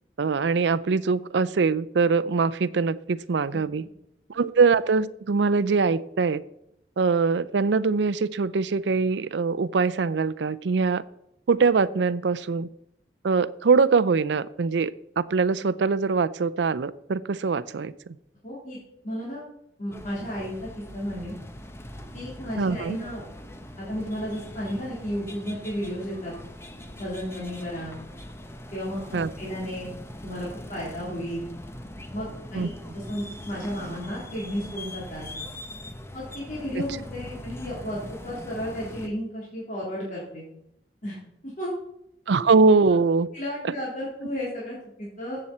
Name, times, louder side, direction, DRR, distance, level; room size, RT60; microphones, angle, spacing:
voice 1, 0.2-3.8 4.3-6.4 7.0-11.0 11.5-12.7 13.2-18.2 22.6-23.0 29.1-29.3 32.5-32.7 36.8-36.9 42.3-43.3 43.6-43.7, right 4 dB, 80° right, 16 dB, 0.5 m, -23 dB
voice 2, 18.4-18.8 19.0-19.4 19.8-21.4 22.1-23.2 23.8-26.3 27.0-28.0 28.7-29.9 30.2-31.4 32.1-35.5 36.1-40.4 41.0-41.2 41.4-41.7 43.3-45.4, equal, 45° left, -6 dB, 3.6 m, -33 dB
sound 1, 19.9-39.1, left 1 dB, 15° left, 0.8 m, -41 dB
14.5 x 7.9 x 4.3 m, 0.78 s
head